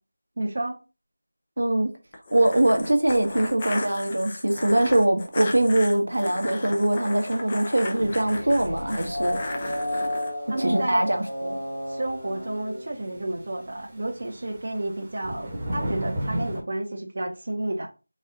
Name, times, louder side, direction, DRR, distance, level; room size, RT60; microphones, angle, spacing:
voice 1, 0.4-0.8 10.5-11.1 11.9-17.9, right 1 dB, 45° right, 0.8 m, -31 dB
voice 2, 1.6-1.9 2.3-9.4 10.6-11.6, right 1 dB, 75° right, 1.0 m, -22 dB
sound 1, 2.1-10.3, left 2 dB, 25° left, 0.5 m, -35 dB
sound 2, 7.3-7.4 7.9-8.0 8.3-8.4 8.6-8.8 9.2-9.3 10.5-10.6 10.7-10.8 11.0-11.2 11.6-11.7 11.9-12.5 12.9-16.6, right 1 dB, 15° right, 1.0 m, -33 dB
sound 3, 7.9-13.5, equal, 65° left, 1.6 m, -33 dB
4.1 x 2.4 x 3.8 m
figure-of-eight pair, 170°, 0 cm